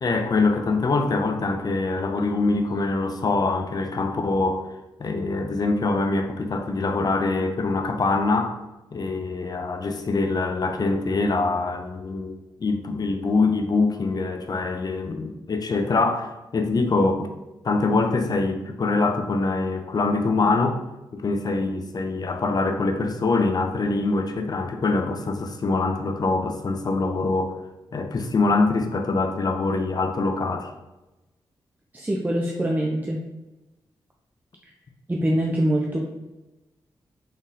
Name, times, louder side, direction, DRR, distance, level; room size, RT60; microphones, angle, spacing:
voice 1, 0.0-4.7 5.0-8.5 8.9-17.3 17.6-20.8 21.1-27.6 27.9-30.7, left 3 dB, 45° left, 5 dB, 0.6 m, -24 dB
voice 2, 31.9-33.2 35.1-36.0, right 1 dB, 20° right, -1 dB, 0.6 m, -24 dB
3.7 x 3.7 x 2.7 m, 1.0 s
cardioid pair, 55°, 9 cm